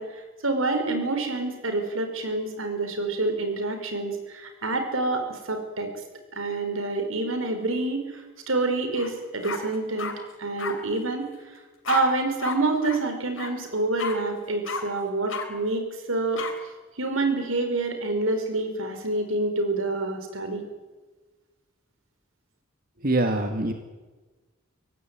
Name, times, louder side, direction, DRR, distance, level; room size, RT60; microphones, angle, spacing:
voice 1, 0.0-5.9 6.3-10.1 10.4-11.6 11.9-16.4 17.0-20.6, right 2 dB, 85° right, 6 dB, 5.2 m, -27 dB
sound 1, 8.9-9.1 9.4-10.1 10.6-10.7 11.8-12.0 12.4-12.6 12.8-13.0 13.4-13.5 14.0-14.1 14.7-14.8 15.3-15.5 16.4-16.5, left 5 dB, 70° left, 3.7 m, -32 dB
voice 2, 23.0-23.7, right 2 dB, 45° right, 5 dB, 2.0 m, -24 dB
24.5 x 18.0 x 9.4 m, 1.2 s
head